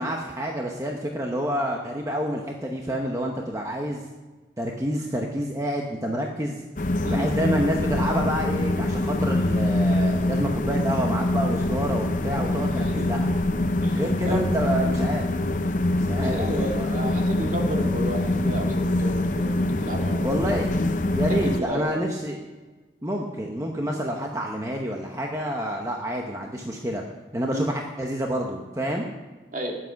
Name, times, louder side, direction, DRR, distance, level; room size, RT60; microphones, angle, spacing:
voice 1, 0.0-4.0 4.6-6.6 7.0-13.3 13.9-15.3 15.9-16.9 20.2-20.7 21.1-22.4 23.0-27.0 27.3-29.1, equal, 15° right, 1 dB, 1.0 m, -28 dB
sound 1, 6.8-21.6, left 1 dB, 45° left, 0.7 m, -24 dB
voice 2, 12.7-13.1 13.8-14.5 16.2-20.3 21.3-22.1 27.5-27.7 29.5-29.8, equal, 45° right, 1 dB, 2.2 m, -32 dB
20.0 x 7.7 x 5.9 m, 1.3 s
head